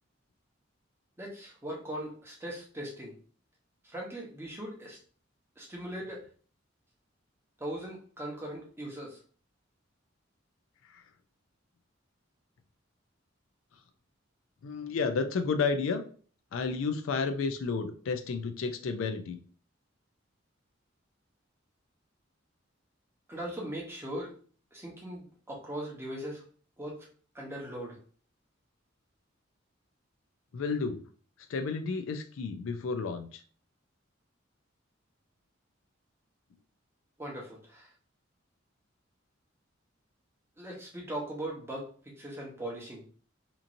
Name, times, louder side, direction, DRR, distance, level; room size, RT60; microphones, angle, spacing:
voice 1, 1.2-3.1 3.9-5.0 5.6-6.2 7.6-9.2 23.3-24.3 24.7-26.4 26.8-27.1 27.3-28.0 37.2-37.9 40.6-43.0, right 1 dB, 15° right, -2 dB, 0.8 m, -39 dB
voice 2, 14.6-16.0 16.5-19.4 30.5-31.0 31.5-33.4, left 4 dB, 85° left, 8 dB, 0.4 m, -31 dB
2.9 x 2.5 x 2.5 m, 0.43 s
head